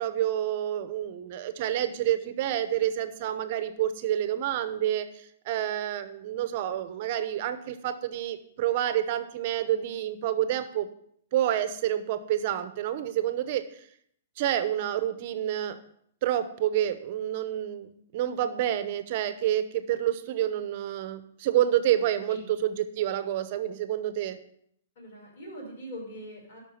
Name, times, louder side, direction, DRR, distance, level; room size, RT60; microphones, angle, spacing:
voice 1, 0.0-10.9 11.3-13.6 14.4-15.8 16.2-24.4, right 11 dB, 40° right, 11 dB, 0.9 m, -28 dB
voice 2, 25.0-26.6, equal, 45° left, -4 dB, 5.5 m, -42 dB
12.0 x 6.0 x 5.8 m, 0.67 s
hypercardioid pair, 165°, 0 cm